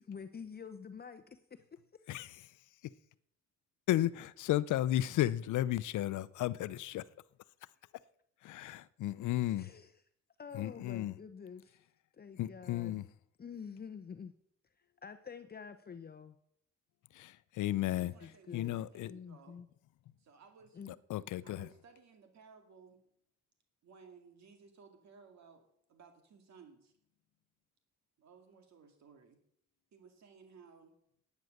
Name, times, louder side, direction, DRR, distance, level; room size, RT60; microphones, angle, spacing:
voice 1, 0.1-2.1 9.6-9.9 10.4-11.8 12.1-13.0 13.4-14.3 14.8-16.4 18.0-18.8 19.1-19.7 20.7-20.9, left 6 dB, 30° left, 0.8 m, -48 dB
voice 2, 2.1-2.6 2.8-2.9 3.9-7.1 8.4-9.7 10.5-11.1 12.4-13.1 17.1-19.1 20.9-21.7, left 14 dB, 80° left, 0.6 m, -34 dB
voice 3, 17.8-19.6 20.2-20.8 21.4-23.0 23.8-25.6 25.9-26.9 28.2-29.4 29.9-30.9, right 5 dB, 65° right, 2.3 m, -59 dB
10.5 x 9.5 x 6.5 m
cardioid pair, 90°, 30 cm